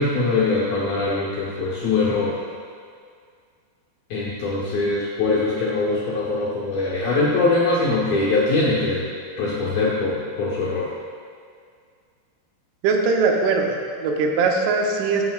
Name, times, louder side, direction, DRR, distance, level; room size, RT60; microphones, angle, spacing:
voice 1, 0.0-2.3 4.1-9.1 9.4-10.9, left 3 dB, 70° left, -7 dB, 2.2 m, -22 dB
voice 2, 12.8-15.3, right 4 dB, 85° right, 1 dB, 3.3 m, -21 dB
14.0 x 6.9 x 2.4 m, 2.2 s
omnidirectional pair, 5.5 m